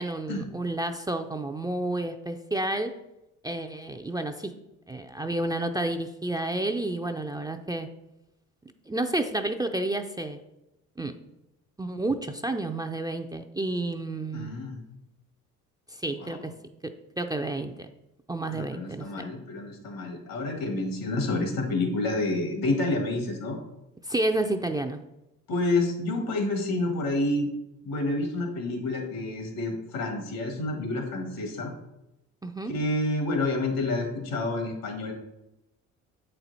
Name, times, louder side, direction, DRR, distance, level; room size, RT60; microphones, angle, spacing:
voice 1, 0.0-2.9 3.4-4.5 4.9-7.9 8.9-10.4 11.0-11.2 11.8-14.5 15.9-16.5 16.8-17.9 18.3-19.0 24.0-25.0 32.4-32.7, right 2 dB, 10° right, 5 dB, 0.5 m, -30 dB
voice 2, 14.3-14.9 16.1-16.4 18.5-23.6 25.5-27.5 27.8-31.7 32.7-35.1, left 2 dB, 75° left, 4 dB, 1.8 m, -29 dB
7.7 x 4.4 x 4.1 m, 0.91 s
supercardioid pair, 70°, 35 cm